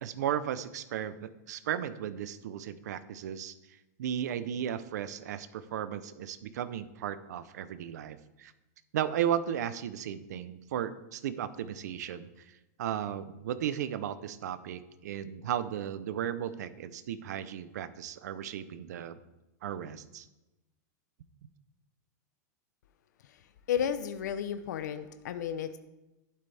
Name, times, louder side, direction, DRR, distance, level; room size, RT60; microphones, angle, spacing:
voice 1, 0.0-3.5 4.0-8.5 8.9-12.3 12.8-19.2 19.6-20.3, right 10 dB, 70° right, 13 dB, 0.8 m, -35 dB
voice 2, 23.7-25.8, left 9 dB, 75° left, 10 dB, 0.7 m, -32 dB
11.5 x 11.5 x 3.5 m, 1.0 s
supercardioid pair, 175°, 10 cm